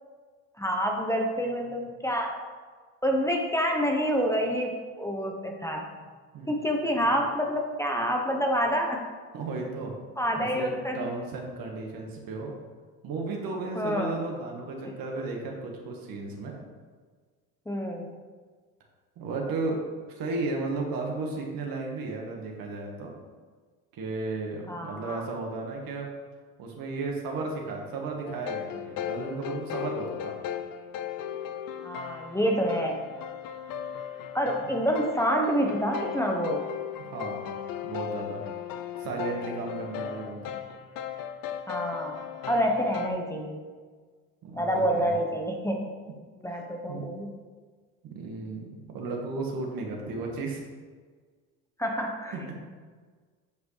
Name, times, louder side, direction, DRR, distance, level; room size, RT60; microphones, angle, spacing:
voice 1, 0.6-2.4 3.0-6.0 6.5-9.1 10.2-11.1 13.7-14.2 17.7-18.1 24.7-25.2 31.8-33.0 34.3-36.7 41.7-43.6 44.6-45.9 46.4-47.3 51.8-52.3, equal, 5° left, 1 dB, 1.0 m, -28 dB
voice 2, 9.3-9.9 10.4-12.5 13.0-16.5 19.2-23.1 23.9-26.1 26.6-30.4 34.7-34.8 37.0-37.5 37.8-38.4 39.0-40.6 44.4-45.2 46.4-47.0 48.0-48.7 48.9-50.6 52.3-52.6, right 3 dB, 60° right, 0 dB, 1.7 m, -34 dB
sound 1, 28.3-43.1, left 9 dB, 60° left, 0.7 m, -37 dB
9.3 x 5.1 x 3.3 m, 1.5 s
supercardioid pair, 75°, 39 cm